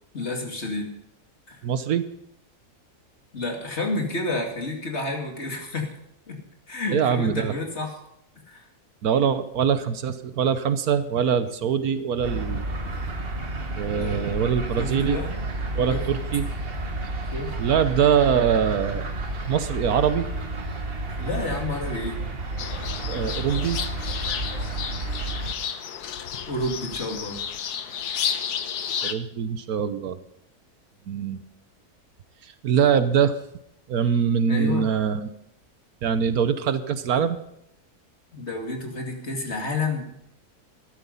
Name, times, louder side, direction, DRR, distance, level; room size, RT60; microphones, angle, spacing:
voice 1, 0.1-0.9 1.5-1.6 3.3-5.9 6.3-6.4 6.7-7.9 8.5-8.7 13.9-14.3 14.8-15.3 15.9-16.0 17.3-17.5 21.2-22.2 26.5-27.4 34.5-34.9 38.3-40.1, left 2 dB, 45° left, 2 dB, 2.7 m, -30 dB
voice 2, 1.6-2.0 6.9-7.5 9.0-12.6 13.8-15.2 15.7-16.5 17.6-19.0 19.5-20.3 23.1-23.8 29.0-30.2 31.1-31.4 32.4-33.4 33.9-35.3 36.0-37.4, right 7 dB, 70° right, 12 dB, 1.3 m, -23 dB
sound 1, 12.1-24.7, left 1 dB, 30° left, 7.5 m, -42 dB
sound 2, 12.2-25.5, right 2 dB, 40° right, 1.5 m, -31 dB
sound 3, 22.6-29.1, left 8 dB, 80° left, 1.5 m, -32 dB
13.5 x 12.0 x 5.5 m, 0.77 s
omnidirectional pair, 1.7 m